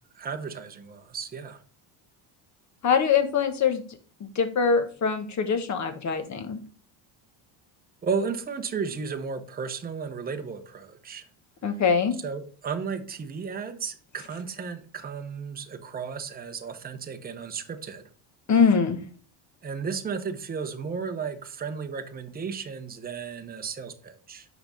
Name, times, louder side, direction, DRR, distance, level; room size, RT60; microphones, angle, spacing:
voice 1, 0.1-1.6 8.0-11.3 12.2-18.0 19.6-24.5, right 5 dB, 20° right, 0.8 m, -34 dB
voice 2, 2.8-3.8 4.3-6.6 11.6-12.1 18.5-19.0, left 6 dB, 35° left, 1.3 m, -23 dB
5.8 x 5.1 x 5.5 m
cardioid pair, 125°, 49 cm